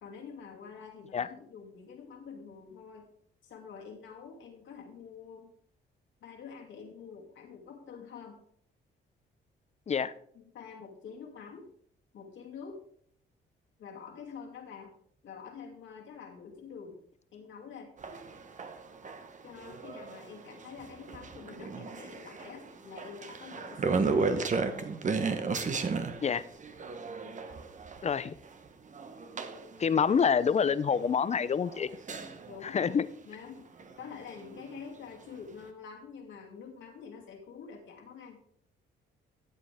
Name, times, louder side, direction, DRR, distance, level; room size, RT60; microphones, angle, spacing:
voice 1, 0.0-3.1 3.4-5.5 6.2-8.4 10.3-11.7 12.1-12.8 13.8-14.9 15.2-17.0 17.3-17.9 19.4-24.4 27.2-27.4 32.5-33.0 33.2-33.7 34.0-38.4, left 6 dB, 75° left, 1 dB, 2.6 m, -47 dB
sound 1, 18.0-32.7 33.8-35.0 35.4-35.5, right 4 dB, 40° right, 1.1 m, -35 dB
voice 2, 28.0-28.3 29.8-31.9 32.7-33.0, left 6 dB, 35° left, 16 dB, 0.5 m, -27 dB
13.5 x 7.7 x 3.5 m, 0.64 s
cardioid pair, 90°, 20 cm